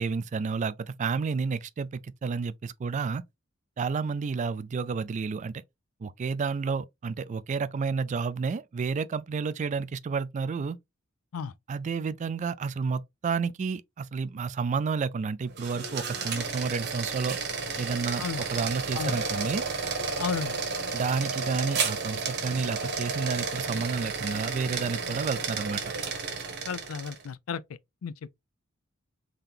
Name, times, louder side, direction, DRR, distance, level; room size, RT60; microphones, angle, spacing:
voice 1, 0.0-3.2 3.8-5.6 6.0-10.8 11.7-17.4 17.8-19.6 20.9-25.8, right 5 dB, 35° right, 0.3 m, -30 dB
sound 1, 15.5-27.3, right 4 dB, 55° right, 1.1 m, -32 dB
voice 2, 20.2-20.5 26.7-27.6 28.0-28.3, left 6 dB, 85° left, 0.4 m, -33 dB
3.8 x 2.8 x 3.3 m
head